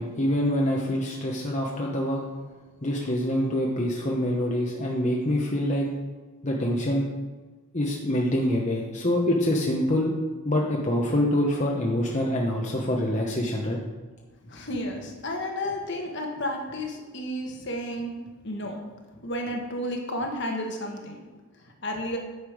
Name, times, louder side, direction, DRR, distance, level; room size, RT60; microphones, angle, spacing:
voice 1, 0.0-2.2 2.8-5.9 6.4-7.1 7.7-10.1 10.4-13.8, left 1 dB, 35° left, -2 dB, 1.0 m, -25 dB
voice 2, 14.4-18.8 19.2-21.2 21.6-22.2, left 1 dB, 50° left, 2 dB, 1.4 m, -32 dB
9.7 x 6.7 x 5.0 m, 1.3 s
head